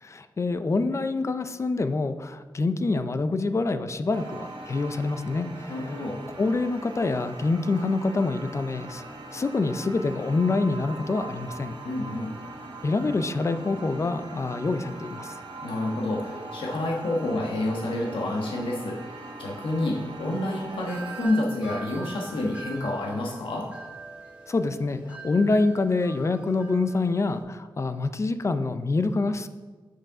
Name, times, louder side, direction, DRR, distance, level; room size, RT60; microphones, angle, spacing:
voice 1, 0.0-6.0 6.4-9.0 9.3-11.8 12.8-15.4 24.5-29.5, left 3 dB, 35° left, 10 dB, 0.4 m, -26 dB
sound 1, 4.1-21.2, right 2 dB, 90° right, 2.1 m, -41 dB
voice 2, 5.7-6.2 11.8-12.3 15.6-23.7, left 1 dB, 75° left, -2 dB, 1.3 m, -29 dB
Wind chime, 20.7-27.4, right 3 dB, 15° right, 1.3 m, -43 dB
6.6 x 6.5 x 4.8 m, 1.4 s
wide cardioid pair, 145°, 9 cm